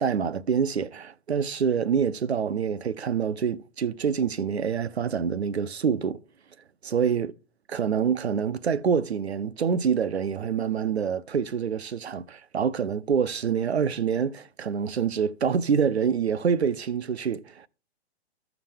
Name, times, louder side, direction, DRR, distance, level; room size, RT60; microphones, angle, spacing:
voice 1, 0.0-6.2 6.8-7.3 7.7-17.7, right 7 dB, 75° right, 0.6 m, -26 dB
14.0 x 5.9 x 3.5 m
figure-of-eight pair, 125°, 33 cm